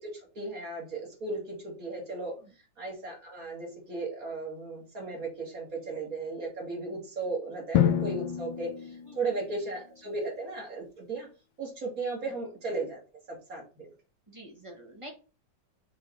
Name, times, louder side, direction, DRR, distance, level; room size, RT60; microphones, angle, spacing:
voice 1, 0.0-2.4 2.8-11.3 11.6-13.0 13.3-13.9, right 3 dB, 45° right, -1 dB, 2.5 m, -36 dB
Drum, 7.7-9.7, left 10 dB, 75° left, 1.2 m, -28 dB
voice 2, 9.0-9.4 10.0-10.2 12.2-12.3 14.3-15.1, right 1 dB, 20° right, 2 dB, 1.1 m, -48 dB
7.0 x 3.8 x 3.9 m, 0.35 s
omnidirectional pair, 2.1 m